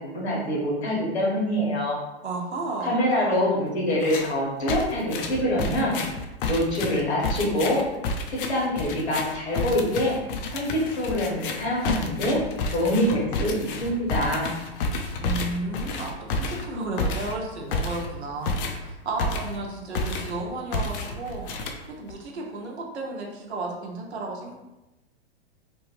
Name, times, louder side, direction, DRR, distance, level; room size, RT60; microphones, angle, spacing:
voice 1, 0.0-2.0 2.8-6.0 6.5-7.8 8.3-10.1 10.5-12.4 12.7-14.5, equal, 80° left, -4 dB, 1.4 m, -25 dB
voice 2, 2.2-3.0 15.2-21.4 21.9-24.5, right 2 dB, 85° right, 0 dB, 0.7 m, -33 dB
sound 1, 4.0-4.3 4.7-19.7 19.9-20.4 20.7-22.1, left 3 dB, 55° left, 0.5 m, -30 dB
3.0 x 2.2 x 3.0 m, 0.99 s
hypercardioid pair, 115°, 32 cm